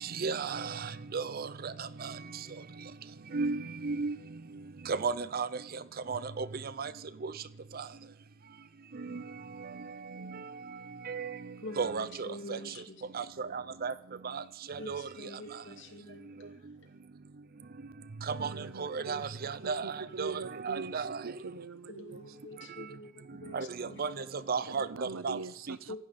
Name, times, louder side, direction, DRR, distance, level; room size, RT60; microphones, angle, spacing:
voice 1, 0.0-2.1 3.3-4.2 4.9-5.5 6.1-6.5 6.8-6.9 7.2-7.3 7.7-7.8 9.1-9.2 10.2-10.4 11.1-11.4 11.8-12.6 13.1-13.9 14.2-14.4 14.7-15.0 18.3-21.2 23.5-24.1 24.5-24.9 25.2-25.4 25.7-25.8, right 5 dB, 50° right, 0.6 m, -34 dB
voice 2, 11.6-13.0 14.8-17.0 18.9-19.3 19.7-19.8 21.9-24.3 25.9-26.0, left 1 dB, 65° left, 2.3 m, -46 dB
voice 3, 18.4-22.2 22.6-22.7 24.7-26.0, right 4 dB, 85° right, 0.7 m, -43 dB
25.5 x 11.0 x 4.3 m
head